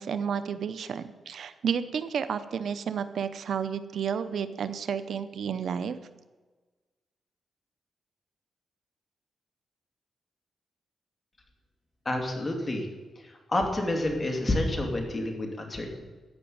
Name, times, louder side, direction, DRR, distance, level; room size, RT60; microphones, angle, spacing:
voice 1, 0.0-6.0, right 7 dB, 70° right, 12 dB, 0.7 m, -31 dB
voice 2, 12.0-12.9 13.2-16.1, left 1 dB, 25° left, 2 dB, 2.8 m, -29 dB
14.0 x 6.1 x 9.4 m, 1.3 s
cardioid pair, 95°, 0 cm